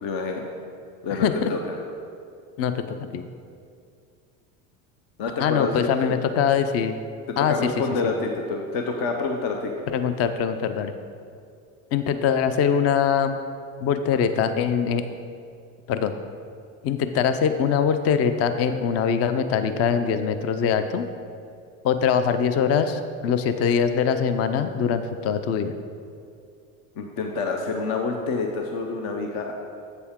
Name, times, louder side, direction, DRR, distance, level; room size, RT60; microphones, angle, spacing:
voice 1, 0.0-0.4 1.0-1.6 5.2-6.1 7.3-10.0 27.0-29.5, left 4 dB, 60° left, 3 dB, 0.8 m, -28 dB
voice 2, 1.1-1.5 2.6-3.2 5.4-7.0 7.4-7.7 8.0-8.1 9.9-10.9 11.9-13.4 13.8-15.0 15.9-16.1 16.8-21.0 21.8-25.7, left 7 dB, 40° left, 10 dB, 0.5 m, -23 dB
7.9 x 6.8 x 3.6 m, 2.4 s
supercardioid pair, 105°, 40 cm